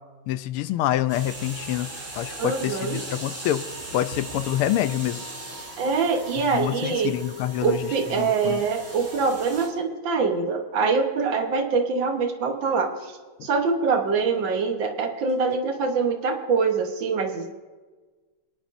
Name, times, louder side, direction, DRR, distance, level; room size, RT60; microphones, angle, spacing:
voice 1, 0.3-3.6 3.9-5.2 6.5-8.6 13.4-13.5, left 13 dB, 90° left, 12 dB, 1.5 m, -27 dB
sound 1, 1.1-9.7, right 2 dB, 35° right, 3.0 m, -39 dB
voice 2, 2.4-3.0 5.8-7.1 7.6-13.1 13.4-17.5, right 4 dB, 65° right, 4 dB, 1.8 m, -24 dB
29.0 x 10.5 x 2.6 m, 1.4 s
omnidirectional pair, 2.4 m